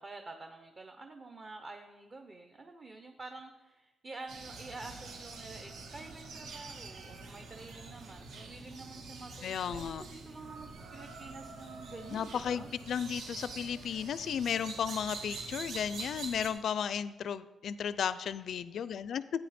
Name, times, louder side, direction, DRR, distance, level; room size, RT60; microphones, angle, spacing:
voice 1, 0.0-12.7, right 3 dB, 30° right, 5 dB, 0.8 m, -48 dB
sound 1, 4.3-16.5, right 3 dB, 75° right, 1.8 m, -45 dB
voice 2, 9.4-10.0 12.1-19.2, left 8 dB, 60° left, 16 dB, 0.4 m, -34 dB
15.0 x 8.8 x 4.2 m, 1.1 s
wide cardioid pair, 155°, 0 cm